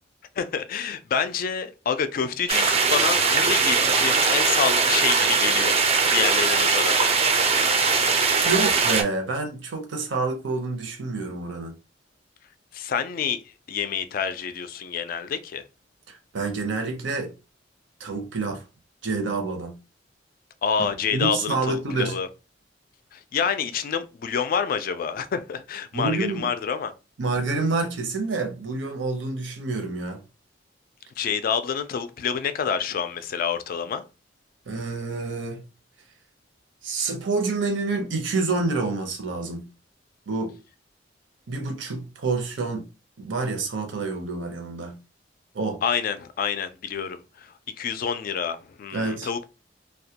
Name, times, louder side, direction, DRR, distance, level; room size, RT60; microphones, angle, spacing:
voice 1, 0.4-5.8 6.1-7.0 12.7-13.4 13.7-15.6 20.6-22.3 23.1-26.9 31.2-34.0 45.8-49.5, left 7 dB, 50° left, 0.3 m, -27 dB
sound 1, 2.5-9.0, right 4 dB, 35° right, 0.4 m, -21 dB
voice 2, 8.4-11.7 16.1-17.3 18.0-18.6 19.0-19.8 20.8-22.2 25.9-26.5 27.2-30.2 34.7-35.6 36.8-39.7 40.3-40.5 41.5-42.9 43.2-45.0 45.5-45.8 48.9-49.3, right 3 dB, 85° right, 0.7 m, -28 dB
2.2 x 2.1 x 2.7 m
head